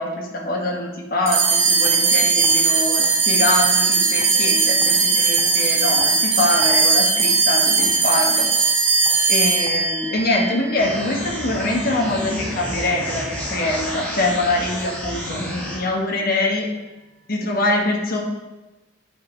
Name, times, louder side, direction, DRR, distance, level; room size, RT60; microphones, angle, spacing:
voice 1, 0.0-8.5 9.3-16.7 17.3-18.2, left 2 dB, 45° left, 0 dB, 1.4 m, -24 dB
sound 1, 1.2-2.1 2.4-2.6 3.0-3.2 3.5-3.9 4.2-4.5 4.8-5.0 5.4-6.8 7.1-8.0 8.5-8.6 9.0-9.2 9.6-10.4 11.1-11.3 12.0-12.3 12.6-13.2 13.9-14.0 14.2-14.4 14.8-15.0, equal, 10° right, 2.2 m, -41 dB
sound 2, 1.3-11.9, right 4 dB, 75° right, 1.4 m, -19 dB
sound 3, 10.8-15.8, equal, 10° left, 1.9 m, -30 dB
8.6 x 5.5 x 4.5 m, 1.1 s
head